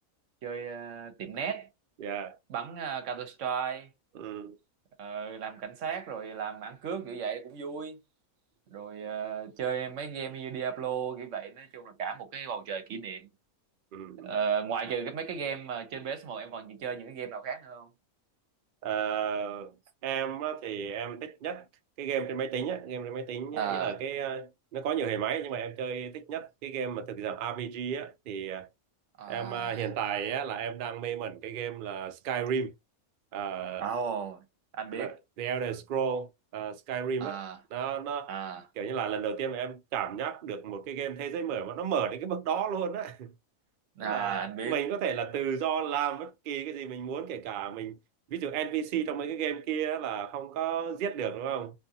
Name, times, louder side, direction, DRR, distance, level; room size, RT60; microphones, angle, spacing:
voice 1, 0.4-1.7 2.5-3.9 5.0-8.0 8.7-13.3 14.2-17.9 23.5-23.9 29.2-29.9 33.8-34.4 34.7-35.1 37.2-37.6 38.3-38.6 44.0-44.8, right 7 dB, 65° right, 1.0 m, -35 dB
voice 2, 2.0-2.4 4.1-4.6 13.9-14.3 18.8-19.7 20.0-21.7 22.0-28.7 29.3-32.7 33.3-33.9 34.9-37.4 37.7-38.3 38.8-43.3 44.0-48.0 48.3-51.8, right 8 dB, 90° right, 0.4 m, -33 dB
2.5 x 2.4 x 2.6 m
omnidirectional pair, 1.5 m